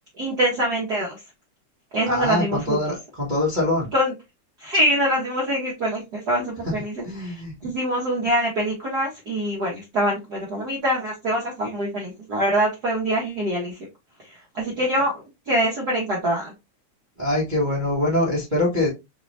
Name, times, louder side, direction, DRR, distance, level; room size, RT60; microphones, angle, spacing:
voice 1, 0.2-1.2 1.9-2.9 3.9-4.1 4.6-7.3 7.6-13.8 14.3-16.5, equal, 85° right, 0.8 m, -24 dB
voice 2, 2.1-3.9 7.0-7.5 17.2-18.9, left 1 dB, 45° right, 0.6 m, -23 dB
4.5 x 3.2 x 2.6 m
omnidirectional pair, 3.4 m